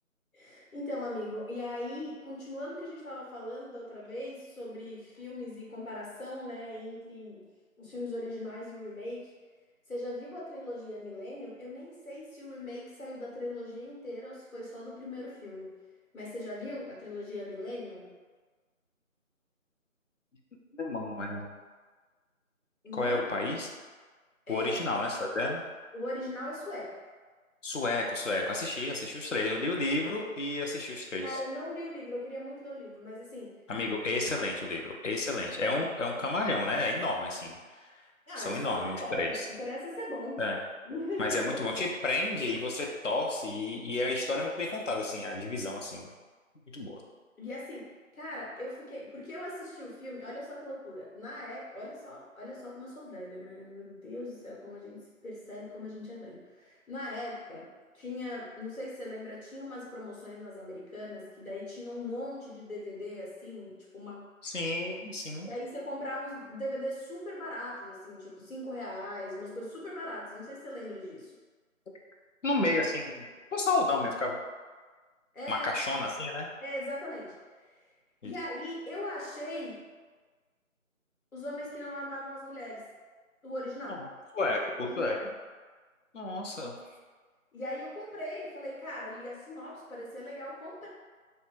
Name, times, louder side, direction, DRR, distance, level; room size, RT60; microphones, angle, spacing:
voice 1, 0.3-7.4 7.8-9.3 9.9-15.7 16.1-18.1 22.8-23.2 24.5-24.7 25.9-27.0 31.2-33.5 35.8-35.9 38.3-40.4 40.8-41.6 47.4-47.9 48.1-57.7 57.9-64.2 65.4-71.3 75.3-75.7 76.6-77.7 78.2-79.8 81.3-82.9 83.4-84.1 84.8-85.2 87.5-90.9, left 1 dB, 80° left, -5 dB, 1.1 m, -40 dB
voice 2, 20.7-21.5 23.0-23.7 24.5-25.6 27.6-31.4 33.7-37.6 38.4-39.5 40.4-40.6 41.2-46.1 46.7-47.0 64.4-65.5 72.4-74.4 75.5-76.5 78.2-78.3 84.3-85.2 86.1-86.7, left 2 dB, 60° left, 0 dB, 0.5 m, -31 dB
2.6 x 2.1 x 3.0 m, 1.4 s
figure-of-eight pair, 170°, 42 cm